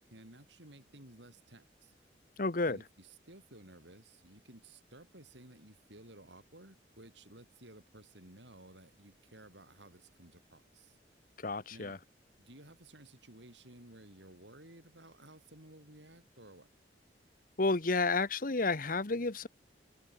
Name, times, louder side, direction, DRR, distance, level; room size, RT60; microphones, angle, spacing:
voice 1, 0.1-1.9 2.6-11.0 11.7-12.0 12.4-16.7, right 1 dB, 80° right, 7.4 m, -55 dB
voice 2, 2.4-2.8 11.4-12.0 17.6-19.5, left 3 dB, 50° left, 1.1 m, -31 dB
open air
head